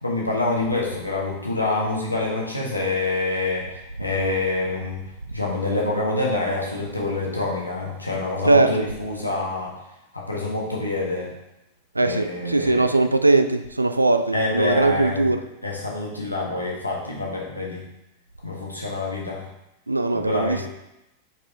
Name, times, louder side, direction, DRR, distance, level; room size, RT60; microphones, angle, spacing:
voice 1, 0.0-5.0 5.3-9.7 10.1-11.3 12.0-12.9 14.3-15.3 15.6-17.8 18.4-19.5 20.1-20.7, left 2 dB, 85° left, -3 dB, 1.4 m, -26 dB
voice 2, 8.5-8.8 12.0-15.4 19.9-20.7, right 2 dB, 80° right, 10 dB, 0.4 m, -20 dB
5.7 x 4.8 x 3.6 m, 0.89 s
figure-of-eight pair, 90°, 0 cm